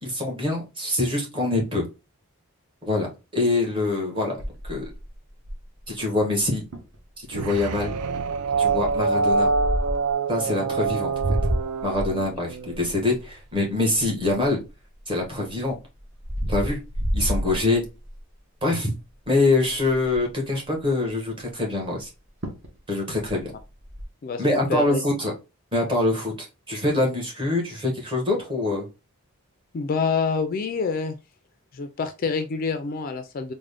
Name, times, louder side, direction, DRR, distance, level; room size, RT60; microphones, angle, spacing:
voice 1, 0.0-1.9 2.8-4.9 5.9-6.6 7.3-7.9 8.6-9.5 10.3-11.4 11.8-14.6 15.1-15.8 16.4-16.8 17.1-17.9 18.6-18.9 19.3-22.1 22.9-23.5 24.4-25.3 25.7-28.9, left 2 dB, 20° right, 1.0 m, -24 dB
sound 1, 4.4-5.8 6.4-6.5 6.7-7.0 7.5-7.8 8.6-10.1 10.8-14.7 15.2-18.2 18.7-18.9 19.2-19.3 19.6-20.3 22.0-22.1 22.4-22.8 23.1-24.0, equal, 50° right, 0.8 m, -30 dB
sound 2, 7.3-12.9, right 4 dB, 85° right, 0.4 m, -25 dB
voice 2, 24.7-25.0 29.7-31.2 31.7-33.5, left 5 dB, 40° left, 0.3 m, -26 dB
3.7 x 2.1 x 3.3 m
head